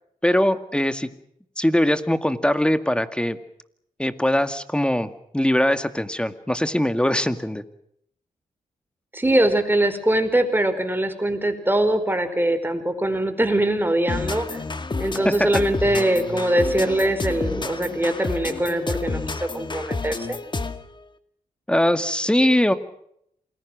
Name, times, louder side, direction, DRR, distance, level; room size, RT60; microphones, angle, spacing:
voice 1, 0.2-1.1 1.6-3.4 4.0-7.6 15.2-15.6 21.7-22.7, left 1 dB, 5° left, 10 dB, 2.1 m, -21 dB
voice 2, 9.1-14.5 15.0-20.4, right 1 dB, 15° right, 8 dB, 4.9 m, -22 dB
sound 1, 14.1-20.9, left 3 dB, 35° left, 2.1 m, -30 dB
28.0 x 20.5 x 6.3 m, 0.72 s
cardioid pair, 60°, 14 cm